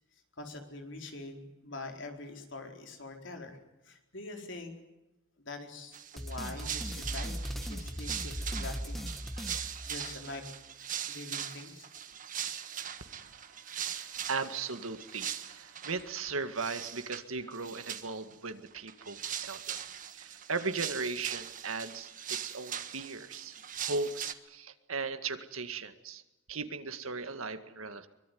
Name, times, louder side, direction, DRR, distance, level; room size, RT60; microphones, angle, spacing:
voice 1, 0.4-4.7 5.4-9.1 9.6-10.4 11.1-11.9, left 2 dB, 60° left, 3 dB, 4.6 m, -44 dB
sound 1, 5.9-16.1 16.6-17.2 17.5-18.3 18.7-24.3, right 9 dB, 40° right, 1.4 m, -41 dB
sound 2, 6.2-10.4, equal, ahead, 1.3 m, -39 dB
voice 2, 13.0-19.8 20.1-26.2 26.5-28.1, right 4 dB, 85° right, 9 dB, 2.0 m, -38 dB
24.0 x 22.0 x 9.5 m, 0.96 s
head